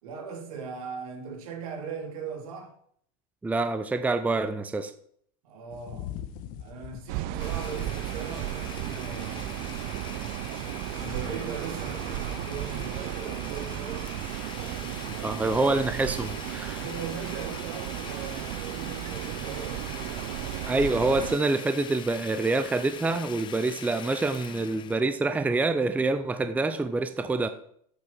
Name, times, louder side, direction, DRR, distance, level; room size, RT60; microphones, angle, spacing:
voice 1, 0.0-2.7 5.4-6.2 6.6-9.6 10.9-15.6 16.8-20.6, right 5 dB, 75° right, 3.6 m, -39 dB
voice 2, 3.4-4.9 15.2-16.8 20.7-27.5, right 3 dB, 10° right, 0.7 m, -26 dB
sound 1, 5.7-16.9, left 10 dB, 50° left, 1.5 m, -47 dB
sound 2, 7.1-21.4, right 17 dB, 50° right, 0.7 m, -35 dB
Domestic sounds home sounds, 7.4-25.0, left 10 dB, 25° left, 0.6 m, -43 dB
10.5 x 8.3 x 6.2 m
supercardioid pair, 125°, 18 cm